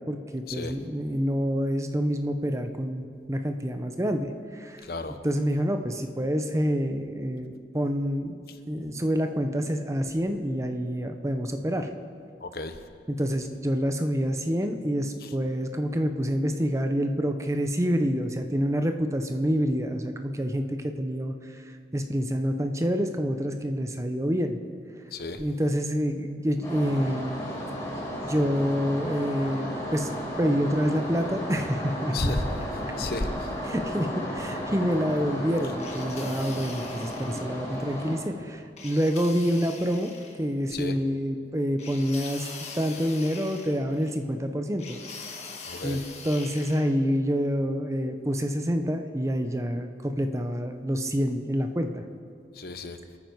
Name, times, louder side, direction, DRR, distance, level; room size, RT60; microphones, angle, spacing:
voice 1, 0.1-4.8 5.2-8.4 8.7-11.9 13.1-24.6 25.4-27.4 28.2-30.1 30.4-32.4 33.6-45.0 45.8-52.0, equal, 15° right, 6 dB, 0.7 m, -27 dB
voice 2, 12.4-12.7 25.1-25.4 32.1-32.5 33.0-33.3 40.7-40.9 45.7-46.0 52.6-53.0, left 2 dB, 60° left, 8 dB, 0.9 m, -32 dB
sound 1, 26.6-38.2, equal, 15° left, 4.1 m, -34 dB
sound 2, 35.8-37.5 38.8-40.4 41.8-44.1 44.8-46.9, left 4 dB, 40° left, 1.6 m, -42 dB
25.5 x 9.2 x 4.7 m, 2.2 s
head